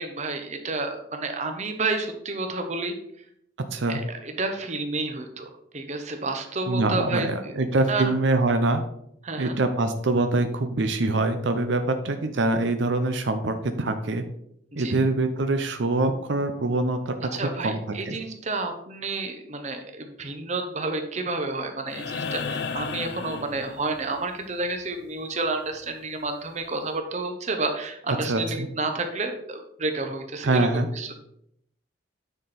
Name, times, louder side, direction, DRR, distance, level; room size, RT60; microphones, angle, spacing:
voice 1, 0.0-2.9 3.9-7.5 7.9-8.1 9.2-9.6 14.7-14.9 17.3-31.1, right 3 dB, 35° right, 6 dB, 0.9 m, -30 dB
voice 2, 6.7-8.8 9.4-14.2 14.8-17.8 18.1-18.2 28.2-28.7 30.4-30.9, right 2 dB, 70° right, 8 dB, 0.6 m, -24 dB
sound 1, 21.9-24.2 26.0-26.1, left 5 dB, 55° left, 0.4 m, -33 dB
9.4 x 4.4 x 4.2 m, 0.73 s
head